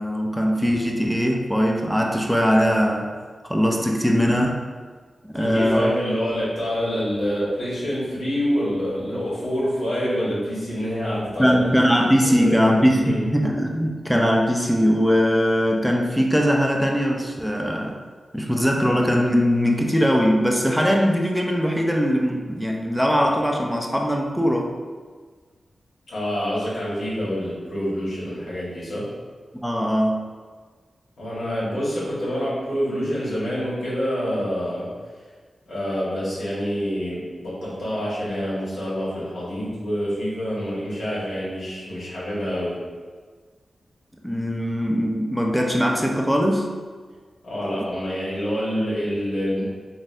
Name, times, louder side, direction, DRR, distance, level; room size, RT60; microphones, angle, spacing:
voice 1, 0.0-3.1 3.5-4.6 5.3-5.9 11.4-18.0 18.3-24.7 29.6-30.2 44.2-46.7, equal, ahead, 0 dB, 0.5 m, -20 dB
voice 2, 5.3-11.7 12.2-13.2 26.1-29.0 31.2-34.9 35.7-42.7 47.4-49.6, equal, 85° left, -8 dB, 1.5 m, -27 dB
3.9 x 2.6 x 2.6 m, 1.5 s
cardioid pair, 55°, 0 cm